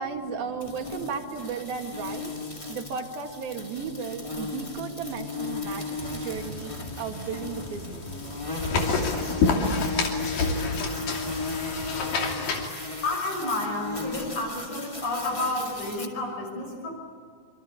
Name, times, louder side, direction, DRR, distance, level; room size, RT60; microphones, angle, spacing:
voice 1, 0.0-2.4 2.7-8.1, right 6 dB, 85° right, 3 dB, 3.9 m, -35 dB
sound 1, 0.6-16.1, left 3 dB, 10° left, 1.6 m, -35 dB
sound 2, 6.0-12.7, left 4 dB, 75° left, 4.5 m, -29 dB
voice 2, 13.0-16.9, left 2 dB, 55° left, 2 dB, 7.5 m, -30 dB
26.5 x 25.0 x 8.6 m, 2.1 s
omnidirectional pair, 4.2 m